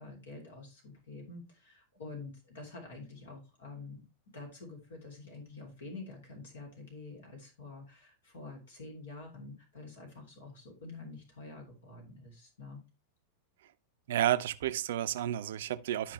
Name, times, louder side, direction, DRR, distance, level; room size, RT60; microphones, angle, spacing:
voice 1, 0.0-4.0 4.3-12.8, left 3 dB, 65° left, 3.1 m, -47 dB
voice 2, 14.1-16.1, right 12 dB, 55° right, 0.6 m, -31 dB
12.0 x 5.2 x 3.3 m
figure-of-eight pair, 90°, 0 cm